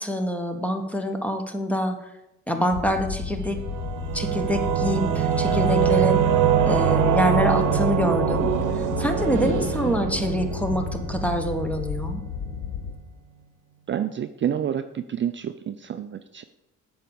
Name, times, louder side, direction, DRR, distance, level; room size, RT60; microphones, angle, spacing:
voice 1, 0.0-2.0 2.5-3.6 4.1-6.2 6.7-12.2, equal, 5° left, 5 dB, 1.1 m, -26 dB
sound 1, 2.7-12.9, left 6 dB, 55° left, 0.8 m, -33 dB
Singing / Musical instrument, 3.5-12.7, right 9 dB, 80° right, 0.9 m, -24 dB
voice 2, 13.9-16.4, right 9 dB, 40° right, 10 dB, 0.4 m, -28 dB
7.5 x 4.9 x 7.0 m, 0.93 s
cardioid pair, 90°, 30 cm